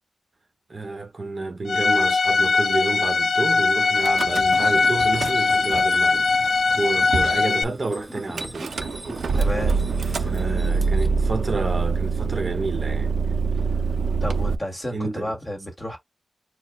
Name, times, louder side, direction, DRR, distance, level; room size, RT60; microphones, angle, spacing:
voice 1, 0.7-6.3 6.8-8.8 10.2-13.1 14.9-15.3, right 3 dB, 40° right, 0.9 m, -29 dB
Bowed string instrument, 1.7-7.6, left 4 dB, 85° left, 0.4 m, -20 dB
Car / Engine starting / Idling, 4.0-4.7 5.0-5.8 6.5-6.6 6.7-6.8 7.1-7.4 8.4-14.5, right 4 dB, 90° right, 0.6 m, -25 dB
sound 1, 4.3-11.1, equal, ahead, 1.1 m, -40 dB
voice 2, 9.3-9.8 14.2-16.0, left 1 dB, 20° left, 1.8 m, -31 dB
4.6 x 2.0 x 4.5 m
wide cardioid pair, 140°, 0 cm